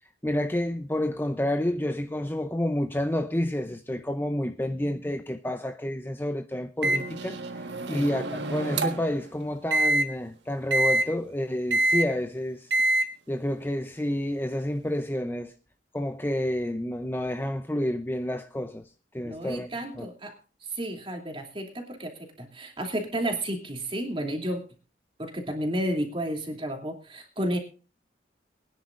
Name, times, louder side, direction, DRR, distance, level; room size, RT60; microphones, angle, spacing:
voice 1, 0.2-7.4 7.9-12.7 13.3-15.5 15.9-18.9 19.1-19.7 20.0-20.1, left 1 dB, 10° left, 0.6 m, -29 dB
Microwave oven, 6.8-9.1 9.7-10.0 10.7-11.0 11.7-12.1 12.7-13.0, right 2 dB, 85° right, 1.5 m, -25 dB
voice 2, 19.2-20.3 20.7-24.6 25.2-27.6, right 1 dB, 30° right, 2.8 m, -32 dB
23.5 x 10.0 x 2.5 m
head